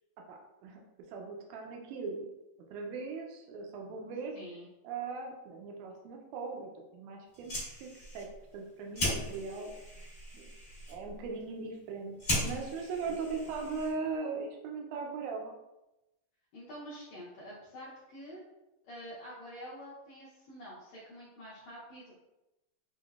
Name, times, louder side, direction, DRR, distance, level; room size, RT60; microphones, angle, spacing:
voice 1, 0.3-0.8 1.1-2.3 2.7-4.3 4.8-7.5 7.8-8.3 8.5-9.7 10.0-10.5 10.9-15.5, right 4 dB, 80° right, 1 dB, 1.8 m, -39 dB
voice 2, 4.3-4.7 13.1-13.2 16.5-18.5 18.9-22.3, equal, 75° left, -8 dB, 1.6 m, -47 dB
Fire, 7.3-14.2, left 1 dB, 50° left, 0.7 m, -38 dB
6.1 x 2.1 x 2.3 m, 0.97 s
omnidirectional pair, 3.9 m